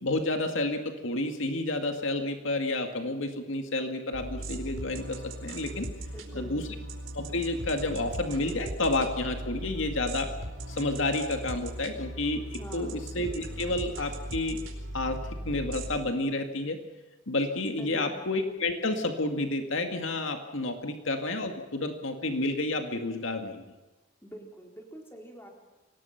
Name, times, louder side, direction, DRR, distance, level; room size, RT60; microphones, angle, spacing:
voice 1, 0.0-5.9 6.3-6.6 7.1-10.3 10.7-14.6 14.9-15.2 15.4-16.8 17.3-23.6, left 2 dB, 70° left, 5 dB, 2.1 m, -30 dB
sound 1, 4.1-16.0, right 1 dB, 80° right, 4.5 m, -38 dB
voice 2, 6.1-6.6 12.6-13.0 17.8-18.2 24.2-25.5, right 1 dB, 10° left, 1 dB, 4.1 m, -44 dB
25.0 x 19.0 x 5.9 m, 1.1 s
head